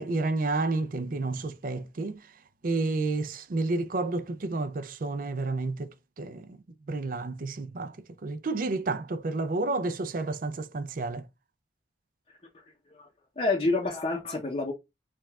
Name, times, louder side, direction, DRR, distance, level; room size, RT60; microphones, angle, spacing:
voice 1, 0.0-2.2 2.6-6.5 6.9-8.0 8.2-11.2, right 3 dB, 50° right, 0.5 m, -30 dB
voice 2, 13.4-14.7, left 3 dB, 35° left, 0.7 m, -28 dB
4.7 x 2.4 x 3.5 m
head